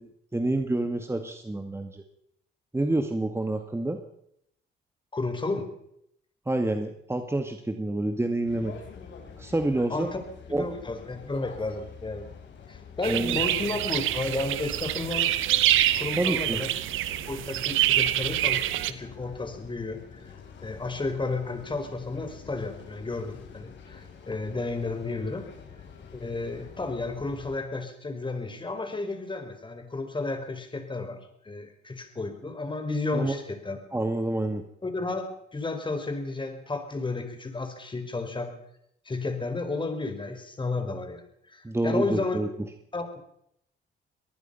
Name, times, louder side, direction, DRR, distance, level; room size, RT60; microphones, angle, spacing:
voice 1, 0.0-2.1 2.7-4.0 6.5-8.7 9.4-10.1 10.5-10.7 13.0-13.4 16.2-16.6 33.1-33.3 33.9-34.6 41.6-42.5, right 2 dB, 10° right, 6 dB, 2.0 m, -28 dB
voice 2, 5.1-5.7 9.9-10.2 10.6-12.2 12.7-15.3 15.9-16.7 17.3-20.3 20.6-25.5 26.1-31.2 31.4-33.8 34.8-35.3 35.5-38.5 39.0-42.4 42.9-43.2, left 3 dB, 25° left, 6 dB, 4.9 m, -32 dB
sound 1, 8.5-27.6, left 6 dB, 65° left, 5.0 m, -47 dB
sound 2, 13.0-18.9, right 13 dB, 85° right, 1.2 m, -26 dB
25.0 x 19.0 x 5.7 m, 0.74 s
cardioid pair, 90°, 20 cm